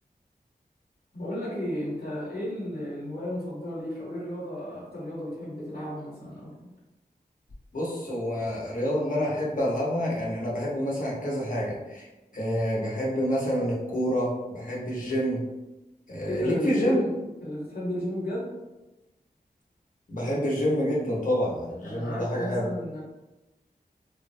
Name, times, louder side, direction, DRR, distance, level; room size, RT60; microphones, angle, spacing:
voice 1, 1.1-6.7 16.2-17.1 17.4-18.5 21.8-23.0, equal, 85° left, -8 dB, 1.1 m, -33 dB
voice 2, 7.7-12.1 12.3-15.4 16.1-17.0 20.1-22.7, equal, 55° left, -5 dB, 1.0 m, -28 dB
3.5 x 2.1 x 2.7 m, 1.1 s
wide cardioid pair, 65°, 16 cm